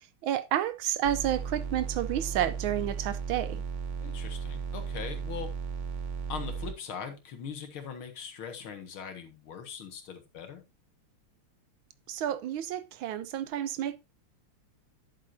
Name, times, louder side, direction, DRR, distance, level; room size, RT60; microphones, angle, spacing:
voice 1, 0.2-3.6 12.1-14.0, right 11 dB, 75° right, 1.4 m, -30 dB
sound 1, 1.0-6.7, right 5 dB, 50° right, 0.9 m, -35 dB
voice 2, 4.0-5.5 6.3-10.6, left 7 dB, 75° left, 2.4 m, -41 dB
11.0 x 7.9 x 2.7 m
omnidirectional pair, 2.3 m